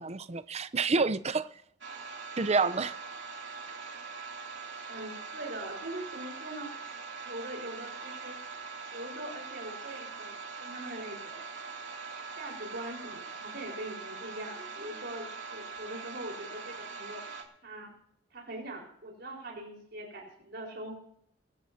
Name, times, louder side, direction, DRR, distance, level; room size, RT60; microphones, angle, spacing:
voice 1, 0.0-1.5 2.4-3.0, right 4 dB, 35° right, 0.7 m, -28 dB
sound 1, 1.8-17.4, right 4 dB, 80° right, 2.8 m, -42 dB
voice 2, 4.9-6.7 7.2-8.4 8.9-11.4 12.4-17.2 17.6-17.9 18.3-21.0, right 1 dB, 60° right, 4.6 m, -42 dB
23.5 x 14.0 x 2.8 m
head